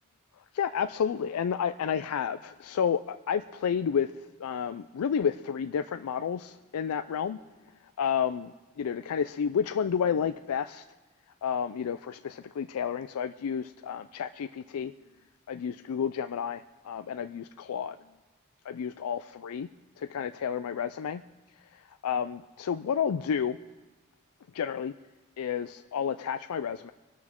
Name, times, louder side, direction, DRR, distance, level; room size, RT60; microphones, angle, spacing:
voice 1, 0.5-4.1 4.4-7.4 8.0-10.8 11.4-14.9 15.5-18.0 18.7-19.7 20.0-21.2 21.7-23.6 24.5-24.9 25.4-26.9, left 7 dB, 85° left, 10 dB, 0.4 m, -31 dB
24.0 x 12.0 x 3.7 m, 1.2 s
head